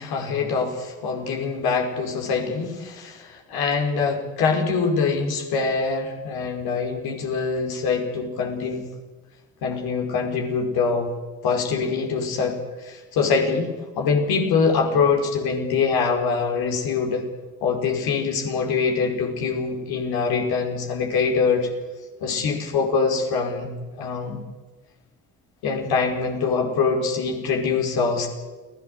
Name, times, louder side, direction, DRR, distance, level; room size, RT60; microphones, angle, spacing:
voice 1, 0.0-8.9 9.6-11.1 11.4-17.2 17.6-21.7 22.2-23.7 24.0-24.4 25.6-28.3, left 5 dB, 65° left, 2 dB, 5.4 m, -24 dB
29.5 x 17.5 x 8.2 m, 1.3 s
figure-of-eight pair, 45°, 40 cm